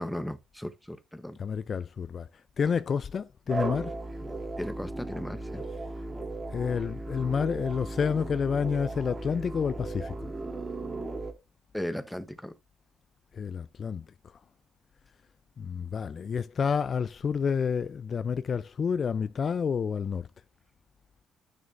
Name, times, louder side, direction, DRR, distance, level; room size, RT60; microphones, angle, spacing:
voice 1, 0.0-1.4 4.6-5.6 11.7-12.5, equal, 5° left, 0.8 m, -36 dB
voice 2, 1.4-2.3 2.6-3.9 6.5-10.1 13.3-14.0 15.6-20.3, left 6 dB, 45° left, 0.3 m, -29 dB
sound 1, 3.5-11.3, right 2 dB, 20° right, 1.6 m, -36 dB
11.0 x 6.3 x 2.5 m
cardioid pair, 90°, 0 cm